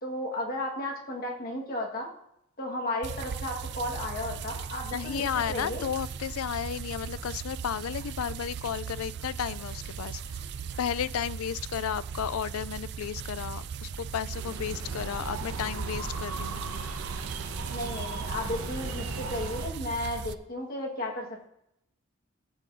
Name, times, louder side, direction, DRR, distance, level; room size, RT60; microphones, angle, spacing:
voice 1, 0.0-2.1 2.6-5.8 17.7-21.5, left 1 dB, 45° left, 0 dB, 1.6 m, -34 dB
sound 1, 3.0-20.3, right 7 dB, 55° right, 0.4 m, -38 dB
voice 2, 4.9-10.4 10.8-16.6, left 8 dB, 85° left, 18 dB, 0.4 m, -33 dB
sound 2, 14.3-19.7, right 3 dB, 80° right, 1.0 m, -37 dB
14.5 x 8.3 x 2.7 m, 0.79 s
head